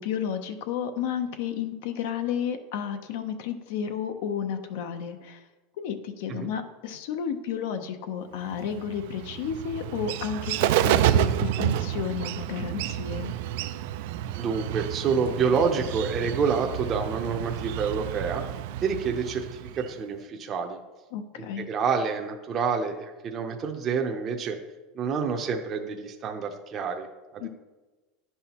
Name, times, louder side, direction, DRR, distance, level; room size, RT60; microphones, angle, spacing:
voice 1, 0.0-5.4 5.8-13.3 21.1-21.7 27.4-27.5, left 8 dB, 75° left, 8 dB, 0.7 m, -32 dB
Bird, 8.5-20.0, right 11 dB, 70° right, 0.3 m, -29 dB
voice 2, 14.3-18.4 18.8-20.8 21.4-24.6 24.9-27.1 27.3-27.5, right 5 dB, 30° right, 3 dB, 0.6 m, -28 dB
9.9 x 5.5 x 2.9 m, 1.2 s
supercardioid pair, 150°, 0 cm